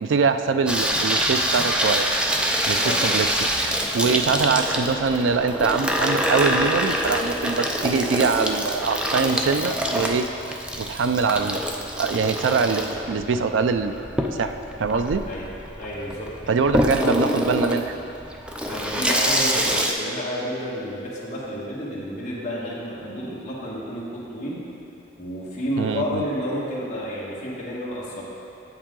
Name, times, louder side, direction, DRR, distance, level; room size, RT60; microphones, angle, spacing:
voice 1, 0.0-2.1 2.7-3.5 3.9-10.3 10.8-11.6 12.0-14.5 14.8-15.2 16.5-18.0 25.8-26.2, right 5 dB, 80° right, 9 dB, 0.4 m, -23 dB
Water tap faucet / Sink (filling or washing), 0.7-19.9, equal, 5° right, 0.4 m, -25 dB
voice 2, 15.8-16.6 17.0-17.2 18.6-24.6 25.2-28.2, equal, 40° left, -8 dB, 1.5 m, -30 dB
8.1 x 7.3 x 3.8 m, 2.8 s
head